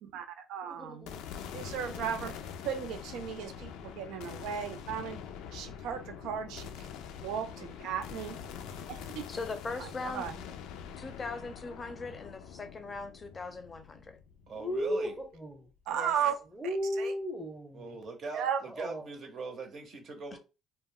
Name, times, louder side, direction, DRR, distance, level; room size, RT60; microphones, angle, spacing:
voice 1, 0.0-1.1 1.5-2.3 2.6-5.2 5.5-6.7 7.2-8.4 8.9-9.2 9.8-10.3 15.9-16.3 17.0-17.1 18.3-18.6, right 8 dB, 85° right, 0.4 m, -35 dB
voice 2, 0.6-1.2 1.8-2.4 4.2-4.4 8.3-8.4 14.5-15.6 16.5-18.0 18.7-19.1, equal, 10° right, 0.7 m, -36 dB
sound 1, 1.1-15.4, left 8 dB, 90° left, 0.3 m, -44 dB
voice 3, 9.3-10.2 11.0-14.2 15.9-16.1 20.3-20.4, left 3 dB, 30° left, 0.5 m, -40 dB
voice 4, 14.5-15.1 17.7-20.4, right 4 dB, 55° right, 0.7 m, -41 dB
2.2 x 2.1 x 3.6 m
cardioid pair, 105°, 0 cm